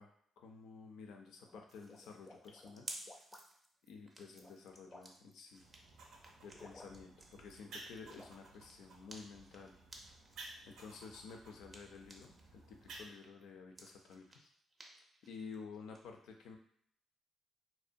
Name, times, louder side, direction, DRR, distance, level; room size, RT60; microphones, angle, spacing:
voice 1, 0.0-2.9 3.2-3.3 3.8-5.6 6.4-9.8 10.7-14.5 14.9-16.6, left 5 dB, 85° left, 3 dB, 0.4 m, -52 dB
sound 1, 1.4-3.7 4.2-5.3 6.5-7.3 7.6-8.3, left 2 dB, 20° left, 0.4 m, -57 dB
sound 2, 1.7-12.5 12.8-16.0, right 2 dB, 35° right, 0.5 m, -56 dB
sound 3, 5.6-13.1, right 2 dB, 80° right, 0.5 m, -56 dB
2.6 x 2.1 x 2.5 m, 0.67 s
cardioid pair, 90°, 0 cm